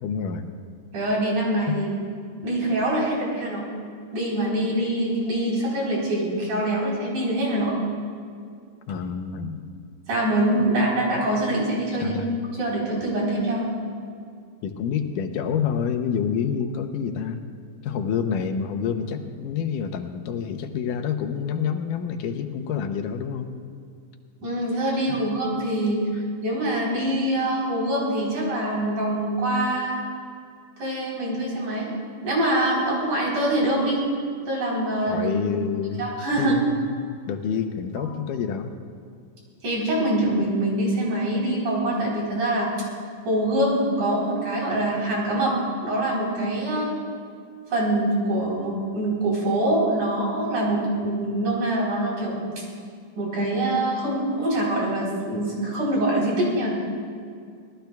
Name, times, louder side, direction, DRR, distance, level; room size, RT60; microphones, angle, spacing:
voice 1, 0.0-0.5 1.7-1.8 8.9-9.6 12.0-12.3 14.6-17.4 17.8-23.5 25.1-25.3 35.1-36.1 36.4-38.7, left 7 dB, 80° left, 6 dB, 2.4 m, -28 dB
voice 2, 0.9-1.9 2.4-3.6 4.1-7.7 10.1-12.2 12.6-13.6 24.4-26.0 26.4-30.0 30.8-31.9 32.2-34.0 34.5-35.3 36.0-36.6 38.0-38.1 39.6-42.7 43.3-45.6 45.8-46.9 47.7-52.4 53.2-56.7, right 1 dB, 65° right, -4 dB, 5.4 m, -24 dB
25.0 x 18.5 x 2.3 m, 2.2 s
omnidirectional pair, 3.7 m